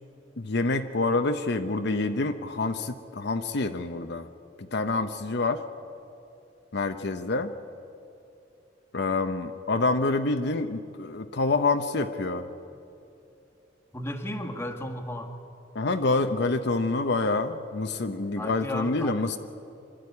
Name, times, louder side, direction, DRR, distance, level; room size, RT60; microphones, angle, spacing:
voice 1, 0.4-4.3 4.7-5.6 6.7-7.5 8.9-12.5 15.7-19.4, left 3 dB, 65° left, 7 dB, 0.8 m, -27 dB
voice 2, 13.9-15.3 18.4-19.3, left 1 dB, 15° left, 2 dB, 1.6 m, -34 dB
25.5 x 12.0 x 9.6 m, 2.7 s
head